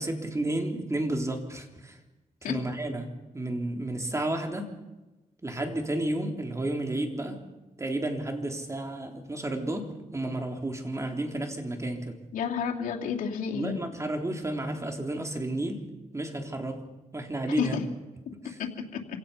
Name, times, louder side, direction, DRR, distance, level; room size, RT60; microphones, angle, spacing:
voice 1, 0.0-2.0 2.4-4.7 5.4-7.4 7.8-12.2 13.5-15.9 16.1-16.9 17.1-17.8 18.4-18.6, right 1 dB, 20° right, 4 dB, 3.6 m, -32 dB
voice 2, 12.3-13.8 17.6-17.8 18.6-19.0, left 7 dB, 90° left, -1 dB, 2.7 m, -30 dB
27.0 x 17.0 x 5.7 m, 1.1 s
cardioid pair, 75°, 14 cm